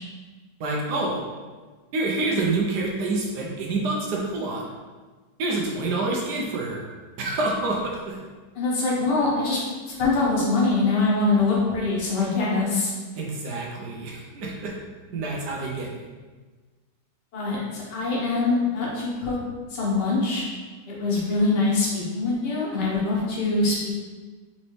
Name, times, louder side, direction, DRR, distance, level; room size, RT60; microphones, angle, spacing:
voice 1, 0.6-1.2 1.9-4.6 5.4-6.9 7.2-8.2 13.1-14.7 15.1-16.0, right 2 dB, 75° right, -2 dB, 1.3 m, -27 dB
voice 2, 8.6-9.6 10.0-12.9 17.3-19.4 19.7-20.4 20.9-23.9, left 3 dB, 80° left, -5 dB, 1.8 m, -23 dB
4.1 x 4.0 x 3.2 m, 1.4 s
omnidirectional pair, 1.8 m